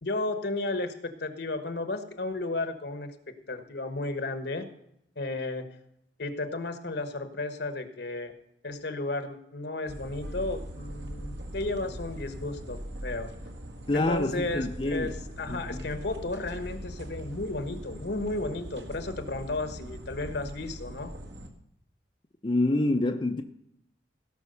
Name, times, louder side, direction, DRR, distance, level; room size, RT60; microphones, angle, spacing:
voice 1, 0.0-4.7 5.2-5.7 6.2-8.3 8.6-13.3 13.9-21.1, left 2 dB, 65° left, 1.3 m, -33 dB
sound 1, 9.9-21.5, equal, 70° right, 1.7 m, -41 dB
voice 2, 13.9-15.1 15.5-15.8 22.4-23.4, left 2 dB, 30° left, 0.6 m, -27 dB
17.0 x 5.9 x 6.8 m
head